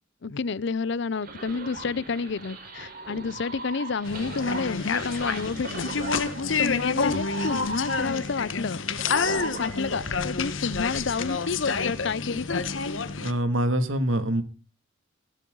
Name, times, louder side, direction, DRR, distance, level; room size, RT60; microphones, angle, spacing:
voice 1, 0.2-5.9 6.3-8.8 9.3-12.6, left 4 dB, 65° left, 0.6 m, -30 dB
sound 1, 1.2-11.9, right 3 dB, 50° right, 4.3 m, -39 dB
sound 2, 4.0-13.3, left 5 dB, 80° left, 1.4 m, -29 dB
voice 2, 13.2-14.4, right 1 dB, 90° right, 2.6 m, -24 dB
17.0 x 12.5 x 4.0 m
head